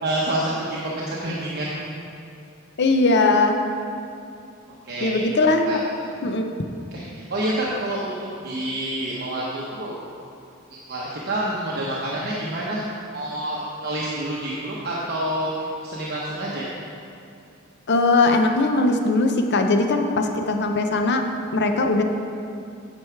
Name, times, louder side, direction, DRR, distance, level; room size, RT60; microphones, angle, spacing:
voice 1, 0.0-1.8 4.8-5.2 5.7-5.8 6.9-10.0 10.7-12.8 13.1-15.5 15.8-16.6, right 1 dB, 50° right, -5 dB, 1.0 m, -28 dB
voice 2, 2.8-3.6 5.0-5.7 6.2-6.5 17.9-21.2 21.5-22.0, left 3 dB, 55° left, 5 dB, 0.7 m, -20 dB
9.5 x 6.1 x 4.6 m, 2.6 s
head